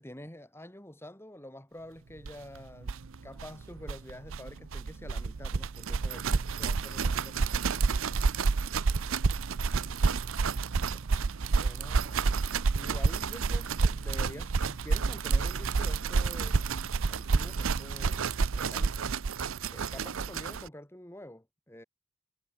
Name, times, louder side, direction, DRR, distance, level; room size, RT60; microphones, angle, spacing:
voice 1, 0.0-7.5 11.6-12.3 12.7-19.1 19.7-21.8, left 1 dB, 10° left, 3.1 m, -47 dB
sound 1, 2.3-2.4 2.6-2.7 2.8-20.7, right 4 dB, 65° right, 0.6 m, -29 dB
head